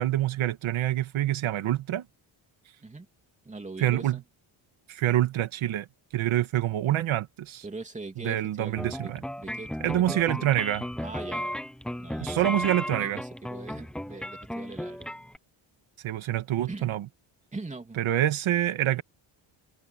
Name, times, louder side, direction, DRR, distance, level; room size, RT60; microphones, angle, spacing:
voice 1, 0.0-2.0 3.8-4.2 4.9-5.9 6.1-7.7 8.2-9.2 9.8-10.9 12.2-13.2 16.0-17.1 18.0-19.0, right 13 dB, 75° right, 1.9 m, -26 dB
voice 2, 3.4-4.2 7.6-9.1 9.4-10.5 11.0-11.6 12.0-12.7 13.0-15.1 16.7-16.9 17.5-18.0, right 3 dB, 15° right, 3.0 m, -41 dB
sound 1, 8.8-15.4, equal, ahead, 0.7 m, -35 dB
cardioid pair, 160°, 49 cm